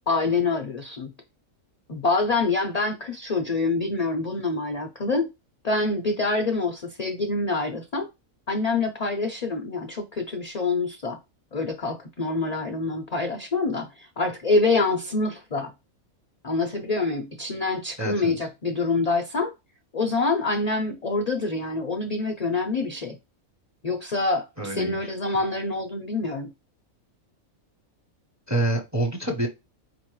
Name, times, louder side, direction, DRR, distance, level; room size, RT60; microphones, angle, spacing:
voice 1, 0.1-1.1 1.9-5.3 5.6-8.1 8.5-11.2 11.5-15.7 16.4-19.5 19.9-23.2 23.8-26.5, left 3 dB, 55° left, 0.4 m, -26 dB
voice 2, 18.0-18.3 24.6-25.1 28.5-29.5, right 2 dB, 15° right, 0.6 m, -27 dB
4.5 x 3.0 x 3.0 m
omnidirectional pair, 1.5 m